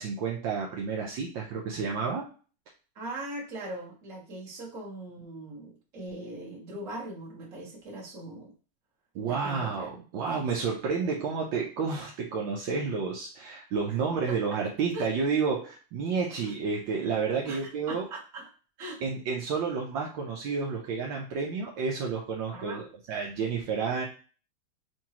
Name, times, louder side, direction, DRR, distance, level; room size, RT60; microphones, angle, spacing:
voice 1, 0.0-2.3 9.1-18.1 19.0-24.1, right 5 dB, 70° right, -2 dB, 1.5 m, -30 dB
voice 2, 2.9-8.5 9.2-10.0 10.3-10.5 13.9-14.0 14.3-14.4 14.9-15.1 16.4-16.5 17.5-18.5 18.8-19.0 22.5-22.9, right 1 dB, 40° right, -4 dB, 1.7 m, -40 dB
6.1 x 2.7 x 2.9 m, 0.37 s
omnidirectional pair, 2.2 m